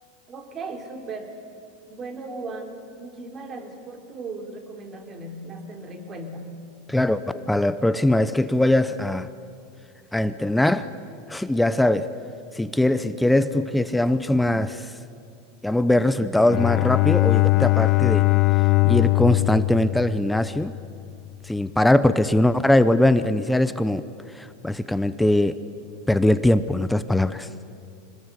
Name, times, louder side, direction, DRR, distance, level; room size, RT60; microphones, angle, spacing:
voice 1, 0.3-1.3 1.9-6.5, right 3 dB, 30° right, 5 dB, 3.3 m, -37 dB
voice 2, 6.9-9.3 10.1-10.9 11.3-12.1 12.5-14.9 15.6-18.3 18.8-20.7 21.5-24.0 24.3-25.6 26.1-27.5, left 1 dB, 5° left, 13 dB, 0.7 m, -21 dB
Bowed string instrument, 16.4-20.9, left 22 dB, 45° left, 0.7 m, -21 dB
25.5 x 20.0 x 8.3 m, 2.4 s
supercardioid pair, 130°, 0 cm